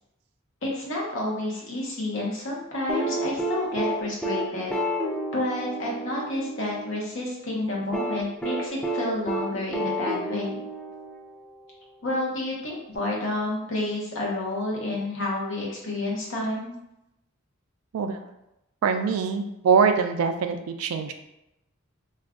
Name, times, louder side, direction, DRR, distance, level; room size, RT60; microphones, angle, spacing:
voice 1, 0.6-4.7 5.3-10.5 12.0-16.7, left 1 dB, 60° left, -3 dB, 0.9 m, -30 dB
sound 1, 2.9-7.0 7.9-11.5 12.9-13.0, right 1 dB, 5° left, 0.3 m, -30 dB
voice 2, 18.8-21.1, right 5 dB, 90° right, 7 dB, 0.3 m, -23 dB
2.4 x 2.3 x 3.5 m, 0.87 s
head